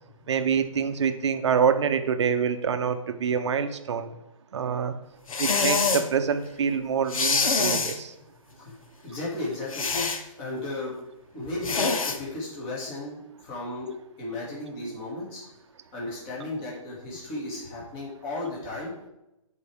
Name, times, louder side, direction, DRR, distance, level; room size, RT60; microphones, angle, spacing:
voice 1, 0.3-4.1 4.5-4.9 5.4-8.1, right 7 dB, 55° right, 9 dB, 0.7 m, -26 dB
sound 1, 5.3-6.1 7.1-8.0 9.7-10.2 11.6-12.2, left 4 dB, 75° left, 1.0 m, -25 dB
voice 2, 8.6-10.0 10.4-10.9 11.3-13.9 14.2-15.4 15.9-18.9, left 2 dB, 20° left, -5 dB, 2.3 m, -34 dB
11.5 x 4.8 x 3.5 m, 0.91 s
hypercardioid pair, 165°, 18 cm